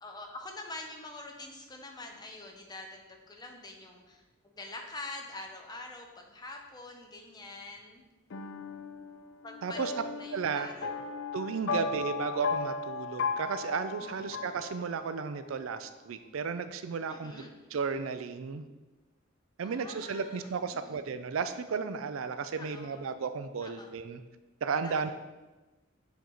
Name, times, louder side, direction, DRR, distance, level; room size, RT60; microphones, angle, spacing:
voice 1, 0.0-8.0 9.4-9.9 10.2-11.0 14.0-14.3 17.1-17.5 19.6-21.1 22.6-23.1 23.6-23.9 24.8-25.1, left 2 dB, 20° left, 2 dB, 0.8 m, -45 dB
sound 1, 8.3-15.3, left 4 dB, 65° left, 0.5 m, -36 dB
voice 2, 9.6-9.9 10.3-10.7 11.3-17.4 17.7-18.7 19.6-24.2 24.6-25.1, right 5 dB, 70° right, 10 dB, 0.4 m, -34 dB
7.2 x 4.6 x 3.9 m, 1.1 s
head